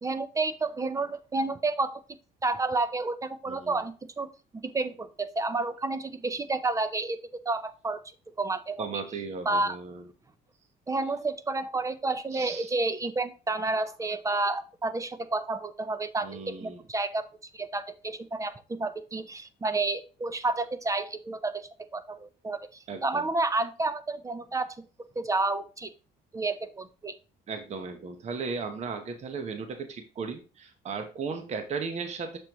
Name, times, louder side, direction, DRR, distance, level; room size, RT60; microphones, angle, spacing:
voice 1, 0.0-2.0 2.4-4.3 4.6-7.2 7.5-8.0 8.4-9.0 9.5-9.8 10.9-17.2 17.5-22.6 23.0-24.8 25.2-25.9 26.3-27.1, right 3 dB, 20° right, 13 dB, 0.5 m, -30 dB
voice 2, 8.8-10.0 12.3-12.7 16.2-16.8 22.9-23.2 27.5-32.4, right 5 dB, 40° right, 7 dB, 0.9 m, -36 dB
6.7 x 6.1 x 3.0 m, 0.34 s
cardioid pair, 110°, 17 cm